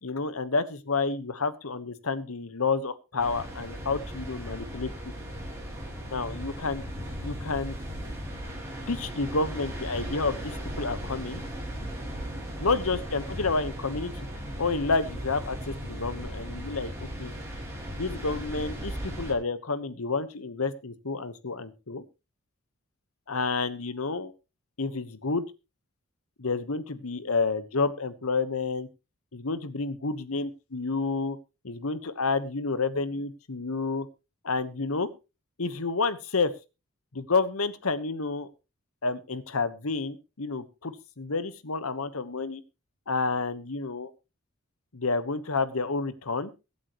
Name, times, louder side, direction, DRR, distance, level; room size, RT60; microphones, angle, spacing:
voice 1, 0.0-4.9 6.1-6.8 7.2-7.7 8.9-11.4 12.6-14.1 14.6-16.9 17.2-17.3 18.0-22.0 23.3-24.3 24.8-25.5 26.4-28.9 29.3-31.4 31.6-34.1 34.4-35.1 35.6-36.5 37.1-38.5 39.0-42.6 43.1-44.1 44.9-46.5, left 4 dB, 85° left, 14 dB, 1.2 m, -29 dB
sound 1, 3.2-19.3, equal, 15° right, 4.6 m, -37 dB
22.5 x 8.6 x 3.1 m, 0.28 s
head